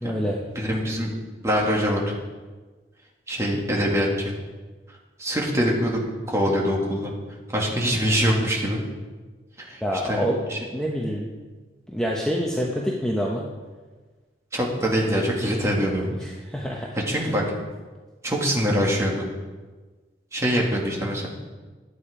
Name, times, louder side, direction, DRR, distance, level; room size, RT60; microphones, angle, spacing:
voice 1, 0.0-0.4 9.8-10.4 10.7-11.3 11.9-13.4 16.5-16.9, equal, 5° left, -2 dB, 0.9 m, -26 dB
voice 2, 0.6-1.1 1.4-2.1 3.3-4.3 4.9-6.0 6.3-7.1 7.5-8.8 9.6-10.6 14.5-16.1 17.0-17.4 18.2-19.3 20.3-21.3, equal, 15° right, -2 dB, 2.0 m, -24 dB
11.5 x 8.9 x 4.9 m, 1.3 s
head